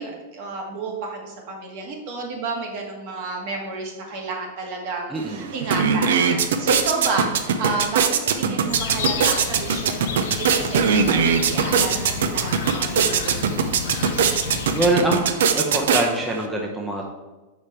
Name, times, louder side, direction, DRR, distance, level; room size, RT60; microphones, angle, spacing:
voice 1, 0.0-13.7, right 3 dB, 55° right, 0 dB, 1.6 m, -31 dB
voice 2, 5.1-5.5 14.7-17.1, right 1 dB, 10° right, -1 dB, 0.7 m, -24 dB
sound 1, 5.2-5.3 5.5-16.5, right 6 dB, 80° right, 0.5 m, -22 dB
sound 2, 8.7-15.0, left 6 dB, 75° left, 0.6 m, -31 dB
5.0 x 4.9 x 4.3 m, 1.2 s
supercardioid pair, 135°, 0 cm